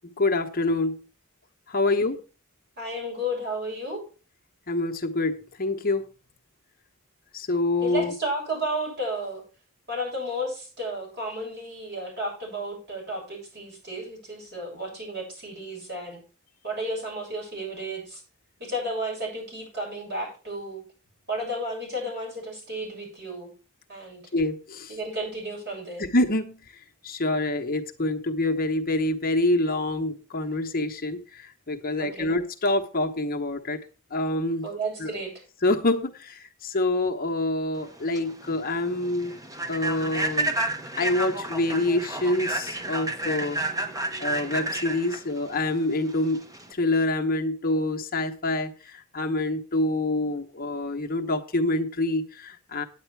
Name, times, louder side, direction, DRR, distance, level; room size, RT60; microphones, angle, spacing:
voice 1, 0.2-1.0 1.7-2.2 4.7-6.1 7.3-8.1 24.3-24.9 26.0-26.6 27.0-33.8 34.1-34.7 35.0-35.1 35.6-39.3 39.7-40.6 41.0-43.6 44.2-46.5 46.7-52.8, left 2 dB, 40° left, 4 dB, 1.0 m, -26 dB
voice 2, 1.8-2.2 2.8-4.0 7.8-9.4 9.9-16.2 16.6-18.2 18.6-20.8 21.3-23.5 23.9-24.2 24.9-26.1 32.0-32.3 34.6-35.4, right 1 dB, 50° right, -2 dB, 7.3 m, -33 dB
Human voice / Train, 37.8-46.7, right 1 dB, 15° right, 0.9 m, -31 dB
9.1 x 9.1 x 4.6 m, 0.35 s
head